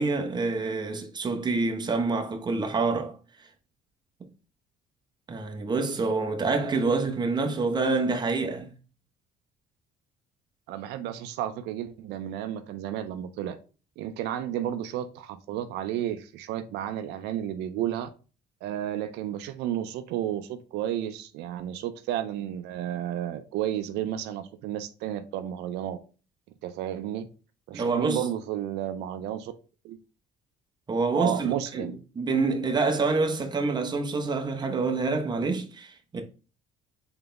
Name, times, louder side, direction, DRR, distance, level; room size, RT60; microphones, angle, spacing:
voice 1, 0.0-3.2 5.3-8.7 27.7-28.2 30.9-36.2, right 3 dB, 25° right, 0.9 m, -27 dB
voice 2, 10.7-13.6 14.0-18.1 18.6-26.0 26.6-27.3 27.7-29.5 29.8-30.0 31.1-31.9, right 11 dB, 85° right, 0.5 m, -32 dB
3.9 x 3.9 x 3.3 m
cardioid pair, 110°, 17 cm